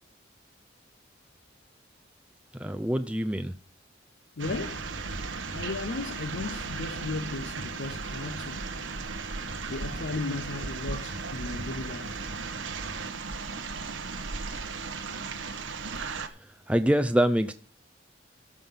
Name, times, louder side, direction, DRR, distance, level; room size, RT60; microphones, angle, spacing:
voice 1, 2.5-3.5 16.0-17.5, equal, 5° right, 0.5 m, -26 dB
voice 2, 4.4-4.9 5.5-8.7 9.7-12.3, left 3 dB, 70° left, 0.6 m, -35 dB
sound 1, 4.4-16.3, right 4 dB, 90° right, 1.2 m, -36 dB
14.0 x 5.5 x 5.7 m
head